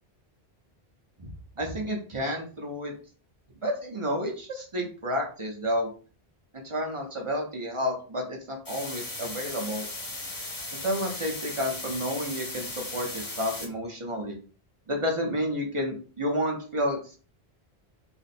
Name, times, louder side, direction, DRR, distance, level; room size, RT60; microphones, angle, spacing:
voice 1, 1.6-2.9 3.6-5.9 6.6-9.8 10.8-14.4 14.9-17.0, equal, 35° right, 1 dB, 0.7 m, -30 dB
sound 1, 8.6-13.6, left 2 dB, 20° left, 0.8 m, -37 dB
3.3 x 2.0 x 4.1 m, 0.39 s
omnidirectional pair, 1.1 m